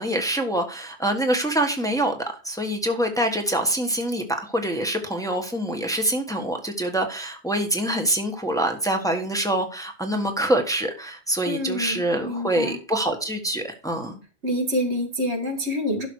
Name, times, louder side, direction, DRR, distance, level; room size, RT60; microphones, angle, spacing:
voice 1, 0.0-2.1 2.4-14.1, right 1 dB, 5° left, 3 dB, 1.4 m, -25 dB
voice 2, 11.5-12.8 14.4-16.1, left 1 dB, 85° right, 3 dB, 2.2 m, -27 dB
12.0 x 6.0 x 4.7 m, 0.35 s
omnidirectional pair, 1.1 m